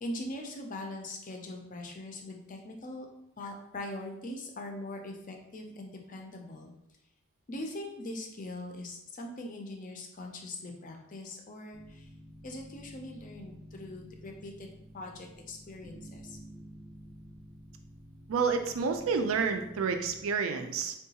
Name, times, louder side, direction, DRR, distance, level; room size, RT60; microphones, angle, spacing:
voice 1, 0.0-3.1 3.4-6.7 7.5-12.0 12.4-16.4, left 1 dB, 35° left, 2 dB, 0.4 m, -41 dB
sound 1, 11.7-20.3, equal, 5° right, 0.7 m, -51 dB
voice 2, 18.3-20.9, right 5 dB, 70° right, 6 dB, 0.4 m, -29 dB
3.7 x 2.3 x 2.8 m, 0.85 s
head